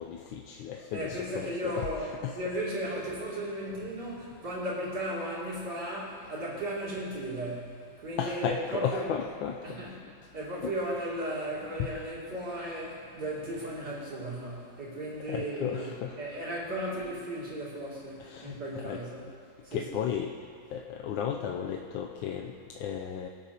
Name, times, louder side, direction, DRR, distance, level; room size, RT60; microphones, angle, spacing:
voice 1, 0.0-2.4 8.2-9.6 10.6-10.7 11.8-11.9 15.3-16.3 18.2-19.0 19.7-20.3 20.7-23.3, left 8 dB, 90° left, 1 dB, 1.4 m, -34 dB
voice 2, 0.9-2.1 2.3-9.1 9.6-9.9 10.3-19.2 19.6-20.0, right 1 dB, 60° right, -7 dB, 3.4 m, -35 dB
22.5 x 8.2 x 2.9 m, 2.2 s
omnidirectional pair, 2.1 m